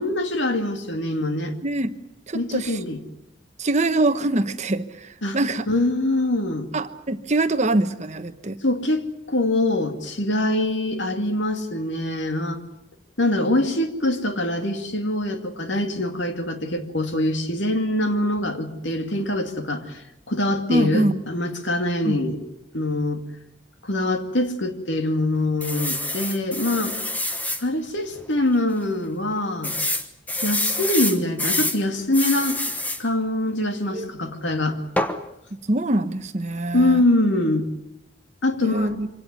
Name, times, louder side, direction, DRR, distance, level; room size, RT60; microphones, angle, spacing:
voice 1, 0.0-1.5 2.3-3.0 5.2-5.4 5.7-6.7 8.6-12.6 13.2-20.0 20.3-22.4 22.7-23.2 23.8-27.0 27.6-29.7 30.4-32.6 33.0-34.8 36.7-37.7 38.4-39.0, left 1 dB, 65° left, 7 dB, 2.4 m, -24 dB
voice 2, 1.6-1.9 2.3-2.8 3.6-5.6 6.7-8.6 20.7-21.2 22.0-22.1 33.9-34.3 35.7-37.0 38.6-39.1, right 2 dB, 35° right, 10 dB, 1.1 m, -24 dB
sound 1, 25.6-27.6 28.2-28.3 28.5-28.6 29.6-31.8 32.1-33.0 35.0-35.2, left 1 dB, 10° left, 1.2 m, -26 dB
25.0 x 17.5 x 9.6 m, 0.87 s
head